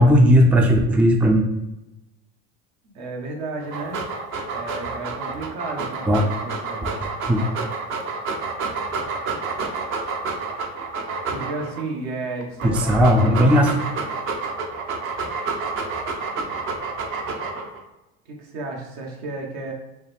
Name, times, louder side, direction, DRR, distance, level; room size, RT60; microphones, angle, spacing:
voice 1, 0.0-1.5 6.1-6.2 6.8-6.9 7.3-7.4 12.6-13.7, equal, 5° right, 2 dB, 0.3 m, -16 dB
voice 2, 2.8-4.1 4.5-6.9 11.3-13.7 18.2-19.7, right 3 dB, 65° right, 0 dB, 1.2 m, -33 dB
Dog, 3.6-11.8 12.4-17.8, right 4 dB, 45° right, 0.7 m, -29 dB
4.8 x 2.2 x 3.4 m, 0.95 s
supercardioid pair, 110°, 30 cm